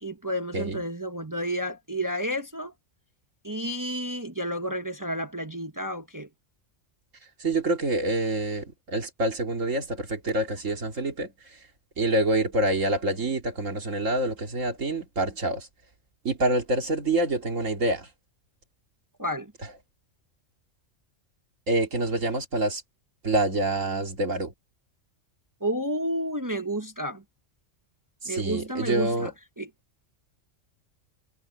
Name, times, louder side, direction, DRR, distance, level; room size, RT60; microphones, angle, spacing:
voice 1, 0.0-2.7 3.4-6.3 19.2-19.5 25.6-27.2 28.2-29.7, equal, 15° right, 1.0 m, -31 dB
voice 2, 7.4-11.3 12.0-15.7 16.2-18.1 21.7-22.8 23.2-24.5 28.2-29.3, right 2 dB, 75° right, 2.9 m, -26 dB
omnidirectional pair, 1.3 m